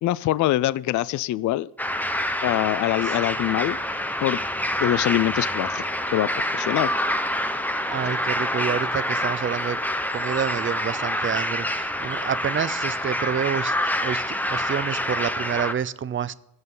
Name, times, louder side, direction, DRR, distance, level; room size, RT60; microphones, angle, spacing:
voice 1, 0.0-1.7 2.4-3.8 4.2-4.4 4.8-5.8 6.1-6.9, left 14 dB, 55° left, 0.4 m, -24 dB
sound 1, 1.8-15.7, left 1 dB, 5° left, 0.9 m, -27 dB
voice 2, 7.9-9.8 10.1-16.3, right 8 dB, 35° right, 0.6 m, -28 dB
20.5 x 8.0 x 3.9 m
cardioid pair, 100°, 37 cm